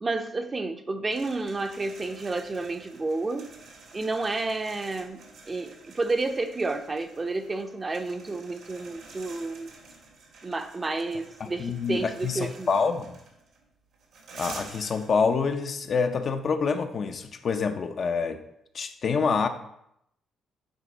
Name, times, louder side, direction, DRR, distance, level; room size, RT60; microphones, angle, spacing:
voice 1, 0.0-3.5 3.9-9.7 10.4-12.7, right 3 dB, 25° right, 8 dB, 0.6 m, -30 dB
sound 1, 1.1-15.8, right 3 dB, 75° right, 1.6 m, -49 dB
voice 2, 11.4-13.2 14.4-18.4 18.7-19.5, left 5 dB, 50° left, 7 dB, 0.5 m, -27 dB
9.2 x 3.4 x 3.9 m, 0.78 s
cardioid pair, 90°, 0 cm